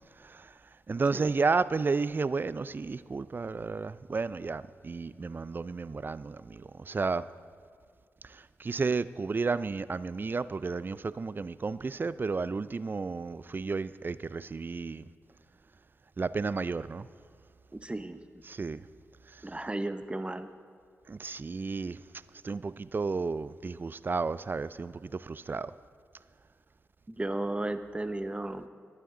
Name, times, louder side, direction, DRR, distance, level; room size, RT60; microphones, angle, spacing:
voice 1, 0.9-7.3 8.3-15.0 16.2-17.1 18.5-18.8 21.1-22.0 22.4-25.7, right 4 dB, 40° right, 17 dB, 0.4 m, -32 dB
voice 2, 17.7-18.2 19.4-20.5 27.1-28.7, right 2 dB, 20° right, 11 dB, 0.7 m, -34 dB
13.0 x 11.0 x 3.8 m, 2.2 s
supercardioid pair, 45°, 5 cm